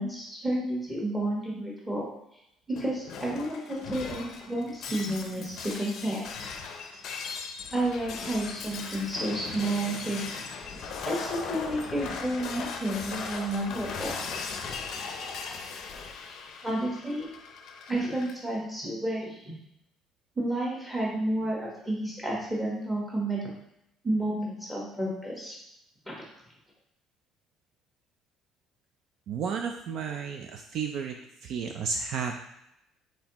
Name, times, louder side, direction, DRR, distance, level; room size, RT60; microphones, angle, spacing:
voice 1, 0.0-2.1 2.8-6.2 7.7-10.3 11.0-14.1 16.6-17.3 17.9-19.5 20.4-23.5 24.0-25.5 26.1-26.2, right 1 dB, 5° right, -4 dB, 1.2 m, -31 dB
Shatter, 2.7-18.3, left 5 dB, 50° left, 0.5 m, -38 dB
voice 2, 29.3-31.2 31.4-32.5, right 6 dB, 50° right, 3 dB, 0.3 m, -32 dB
4.3 x 4.1 x 2.9 m, 0.80 s
cardioid pair, 175°, 0 cm